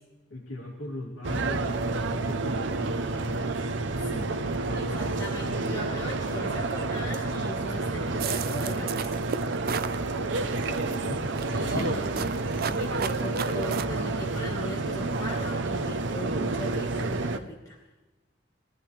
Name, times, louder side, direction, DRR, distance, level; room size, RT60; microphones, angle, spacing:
voice 1, 0.3-3.7 4.0-5.1 5.5-5.9 10.1-11.3 11.7-12.0, left 1 dB, 80° left, -4 dB, 2.9 m, -40 dB
sound 1, 1.2-17.4, right 3 dB, 65° right, 0.8 m, -29 dB
voice 2, 4.7-9.1 11.5-12.3 12.7-17.8, equal, 20° left, -3 dB, 1.6 m, -39 dB
sound 2, 8.2-10.0 10.5-11.0 11.4-13.8, right 7 dB, 50° right, 0.5 m, -34 dB
21.5 x 14.0 x 3.4 m, 1.1 s
head